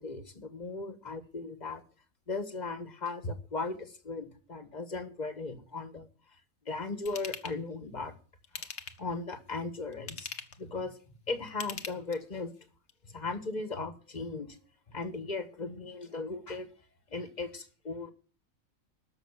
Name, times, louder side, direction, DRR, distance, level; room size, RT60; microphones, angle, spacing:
voice 1, 0.0-1.8 2.3-6.1 6.6-8.1 8.5-8.7 9.0-10.3 10.6-10.9 11.3-12.5 13.0-14.6 14.9-16.7 17.1-18.1, left 3 dB, 30° left, 9 dB, 1.4 m, -37 dB
Ratchet pawl / Tools, 7.1-7.6 8.4-9.1 9.9-10.6 11.5-12.4 12.9-13.0, left 6 dB, 60° left, 1.4 m, -41 dB
13.5 x 6.0 x 9.7 m, 0.42 s
omnidirectional pair, 1.5 m